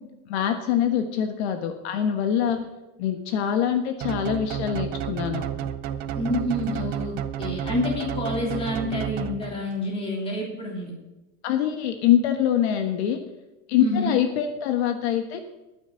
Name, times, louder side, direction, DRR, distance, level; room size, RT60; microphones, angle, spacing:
voice 1, 0.3-2.6 3.0-5.4 11.4-13.2 13.7-15.4, left 9 dB, 65° left, 6 dB, 1.3 m, -24 dB
sound 1, 4.0-9.8, right 10 dB, 25° right, 0.5 m, -31 dB
voice 2, 6.1-10.9 13.8-14.2, left 1 dB, 15° left, -2 dB, 3.3 m, -28 dB
19.5 x 9.5 x 3.9 m, 1.0 s
supercardioid pair, 170°, 36 cm